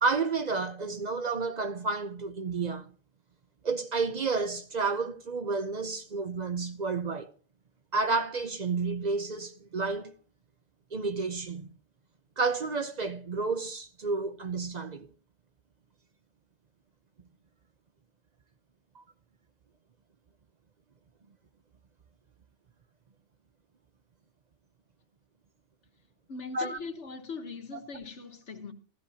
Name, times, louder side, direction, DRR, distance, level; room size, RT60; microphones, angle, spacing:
voice 1, 0.0-2.9 3.6-7.3 7.9-10.1 10.9-11.7 12.4-15.1 18.9-19.0 26.5-26.8, right 4 dB, 45° right, 0.7 m, -31 dB
voice 2, 26.3-28.7, left 4 dB, 85° left, 1.7 m, -41 dB
15.0 x 13.5 x 2.8 m
omnidirectional pair, 1.1 m